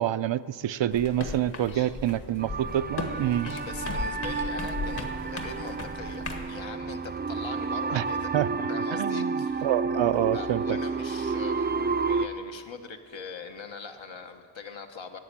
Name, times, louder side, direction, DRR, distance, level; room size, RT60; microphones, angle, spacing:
voice 1, 0.0-3.5 7.9-8.0 8.3-8.5 8.9-9.3 9.6-10.8, right 11 dB, 75° right, 15 dB, 0.5 m, -27 dB
sound 1, 0.9-6.5, left 3 dB, 60° left, 1.6 m, -37 dB
voice 2, 1.7-2.0 3.4-8.3 8.7-10.0 10.3-15.2, left 5 dB, 85° left, 5 dB, 1.2 m, -42 dB
sound 2, 2.4-12.3, right 4 dB, 25° right, 0.4 m, -31 dB
12.5 x 8.2 x 10.0 m, 2.1 s
wide cardioid pair, 90°, 45 cm